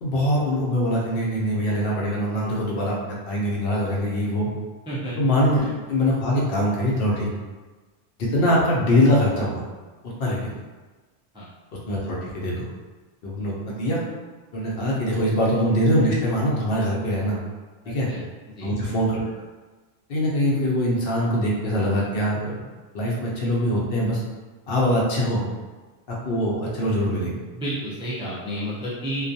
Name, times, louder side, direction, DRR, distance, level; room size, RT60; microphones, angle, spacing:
voice 1, 0.0-4.5 5.2-7.3 8.2-9.6 10.2-10.5 11.9-12.6 13.2-14.0 14.5-17.4 17.9-18.1 18.6-19.2 20.1-22.6 22.9-24.2 24.7-25.4 26.1-27.4, equal, 65° left, -4 dB, 0.7 m, -23 dB
voice 2, 17.8-18.2 18.6-18.7 27.5-29.2, right 1 dB, 10° right, -8 dB, 0.3 m, -31 dB
2.3 x 2.2 x 2.6 m, 1.3 s
omnidirectional pair, 1.1 m